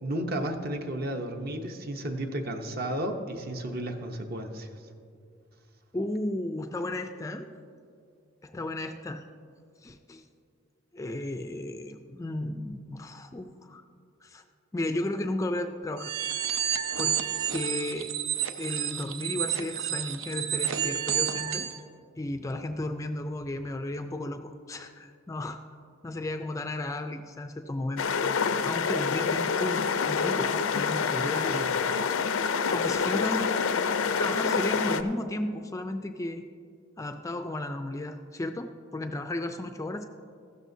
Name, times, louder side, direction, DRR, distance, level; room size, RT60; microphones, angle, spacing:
voice 1, 0.0-4.7 31.5-31.7, right 1 dB, 45° right, 5 dB, 0.8 m, -33 dB
voice 2, 5.9-7.5 8.4-9.3 9.8-10.2 10.9-13.9 14.2-14.4 14.7-16.1 17.0-17.2 17.5-18.1 18.6-21.7 22.2-25.6 26.0-28.0 28.6-31.5 32.7-33.5 34.2-36.4 37.0-40.0, left 1 dB, 15° left, 7 dB, 0.3 m, -34 dB
sound 1, 16.0-21.8, right 10 dB, 80° right, 0.6 m, -30 dB
sound 2, 28.0-35.0, left 5 dB, 90° left, 0.5 m, -27 dB
15.0 x 12.5 x 2.7 m, 2.3 s
head